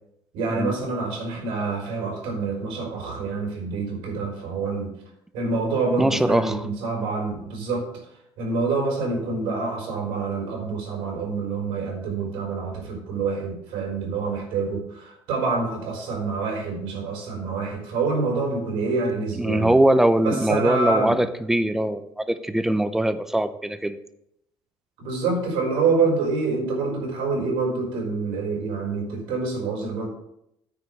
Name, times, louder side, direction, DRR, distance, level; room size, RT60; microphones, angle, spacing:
voice 1, 0.3-4.9 5.3-7.9 8.4-19.7 20.2-21.2 25.0-30.1, right 4 dB, 80° right, 1 dB, 4.2 m, -26 dB
voice 2, 6.0-6.6 19.4-24.0, right 1 dB, 5° right, 12 dB, 0.5 m, -22 dB
9.4 x 4.9 x 7.9 m, 0.78 s
cardioid pair, 160°, 9 cm